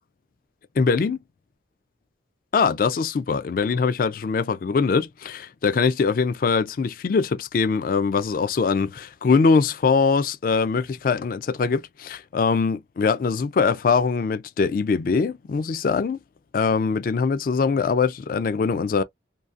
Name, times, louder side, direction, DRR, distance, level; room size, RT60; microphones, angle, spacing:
voice 1, 0.8-1.2 2.5-16.2 16.5-19.0, left 5 dB, 50° left, 0.3 m, -22 dB
2.7 x 2.4 x 2.3 m
head